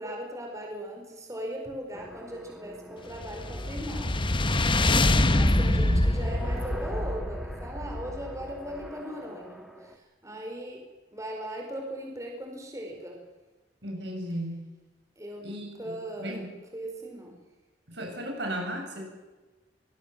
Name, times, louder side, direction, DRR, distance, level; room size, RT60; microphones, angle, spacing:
voice 1, 0.0-4.2 5.3-10.8 11.1-13.2 15.2-16.4 16.7-17.3, equal, 20° right, 1 dB, 4.6 m, -38 dB
sound 1, 1.9-10.0, right 1 dB, ahead, 2.3 m, -45 dB
sound 2, 3.1-8.6, left 1 dB, 30° left, 1.1 m, -25 dB
voice 2, 5.1-6.0 13.8-14.6 15.4-16.5 17.9-19.0, equal, 70° right, 2 dB, 7.7 m, -36 dB
25.0 x 19.5 x 7.6 m, 1.2 s
head